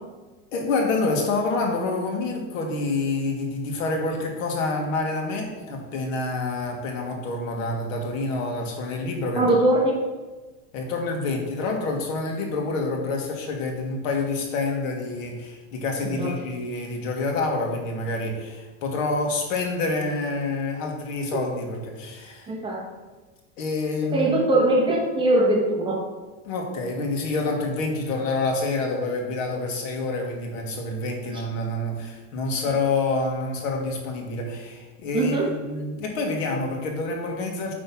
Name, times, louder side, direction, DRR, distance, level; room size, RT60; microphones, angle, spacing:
voice 1, 0.5-9.5 10.7-22.5 23.6-24.3 26.5-37.7, left 3 dB, 80° left, 2 dB, 1.8 m, -27 dB
voice 2, 9.3-9.9 16.2-16.3 21.3-21.4 22.5-22.8 24.1-26.1 31.3-31.4 35.1-35.5, right 1 dB, 15° right, -2 dB, 1.1 m, -21 dB
8.8 x 3.5 x 5.5 m, 1.3 s
supercardioid pair, 165°, 39 cm